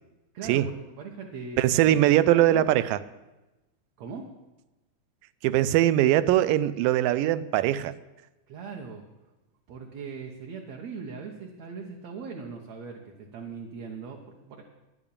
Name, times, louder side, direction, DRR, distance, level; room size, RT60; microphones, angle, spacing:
voice 1, 0.3-1.6 1.9-2.7 4.0-4.3 8.5-9.1 9.7-14.6, right 5 dB, 65° right, 1 dB, 1.9 m, -40 dB
voice 2, 1.6-3.0 5.4-8.0, right 13 dB, 90° right, 16 dB, 2.2 m, -21 dB
10.5 x 8.7 x 8.4 m, 1.0 s
omnidirectional pair, 3.8 m